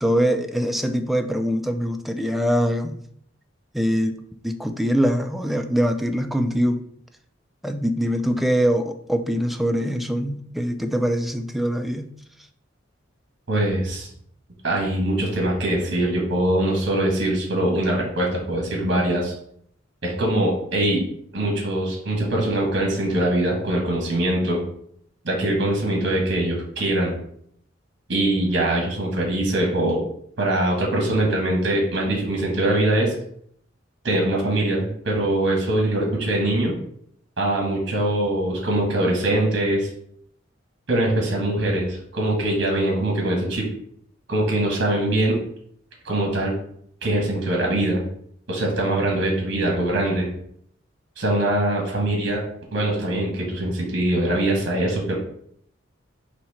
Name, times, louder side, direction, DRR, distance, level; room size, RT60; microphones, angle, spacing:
voice 1, 0.0-3.0 3.7-4.2 4.4-6.8 7.6-12.1, equal, ahead, 6 dB, 0.3 m, -23 dB
voice 2, 13.5-14.1 14.6-19.3 20.0-21.0 21.3-24.6 25.2-27.1 28.1-30.0 30.4-33.1 34.0-36.8 37.4-39.9 40.9-43.7 44.3-45.4 46.0-46.5 47.0-48.0 48.5-50.3 51.2-52.4 52.7-55.1, right 1 dB, 65° right, -1 dB, 1.5 m, -22 dB
4.4 x 2.8 x 4.2 m, 0.68 s
head